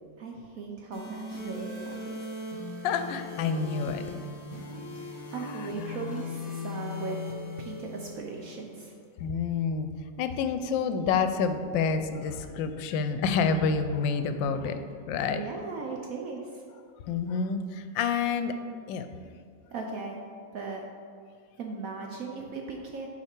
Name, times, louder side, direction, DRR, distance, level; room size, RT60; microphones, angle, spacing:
voice 1, 0.2-2.3 4.9-7.2 7.6-8.9 15.3-16.6 19.7-20.2 20.5-20.8 21.6-23.1, right 4 dB, 65° right, 1 dB, 0.9 m, -38 dB
sound 1, 0.9-8.9, left 3 dB, 50° left, 1.9 m, -39 dB
voice 2, 2.8-4.0 9.2-9.9 10.2-14.8 15.1-15.4 17.1-18.5 18.9-19.1, left 5 dB, 90° left, 9 dB, 1.3 m, -28 dB
8.6 x 4.8 x 4.5 m, 2.2 s
omnidirectional pair, 2.0 m